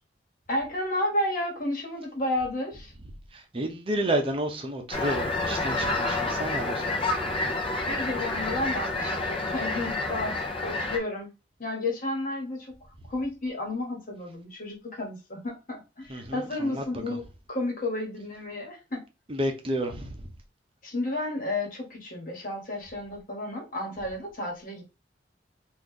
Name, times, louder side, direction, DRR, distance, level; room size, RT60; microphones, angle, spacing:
voice 1, 0.5-2.9 7.8-11.3 11.6-12.8 13.1-19.0 20.8-24.8, left 1 dB, 50° left, 1.4 m, -32 dB
voice 2, 3.5-6.8 16.1-16.8 19.3-20.1, right 1 dB, 30° right, 0.8 m, -30 dB
sound 1, 4.9-11.0, left 2 dB, 30° left, 0.7 m, -29 dB
3.0 x 2.6 x 3.8 m
head